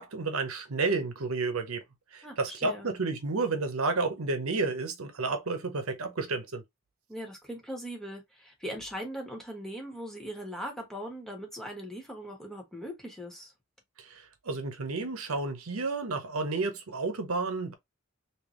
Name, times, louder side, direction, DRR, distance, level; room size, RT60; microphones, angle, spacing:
voice 1, 0.0-1.8 2.1-6.6 14.0-17.7, right 3 dB, 90° right, 0.9 m, -31 dB
voice 2, 2.2-2.9 7.1-13.5, equal, ahead, 1.4 m, -40 dB
3.4 x 2.9 x 3.1 m
head